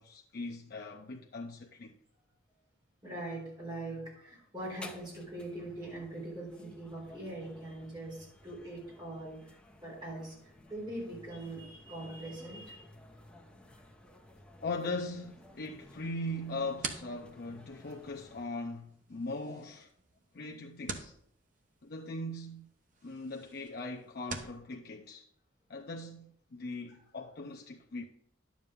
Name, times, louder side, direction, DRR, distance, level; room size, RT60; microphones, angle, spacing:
voice 1, 0.0-2.0 14.6-19.9 20.3-21.1 21.8-22.7 23.0-25.2 25.7-28.0, left 2 dB, 50° left, 0.6 m, -40 dB
voice 2, 3.0-10.4 10.7-12.9, right 1 dB, 20° right, 3.8 m, -42 dB
sound 1, 4.6-18.5, left 1 dB, 5° left, 1.0 m, -55 dB
sound 2, 16.3-24.6, right 4 dB, 40° right, 0.8 m, -47 dB
11.0 x 7.2 x 3.7 m
head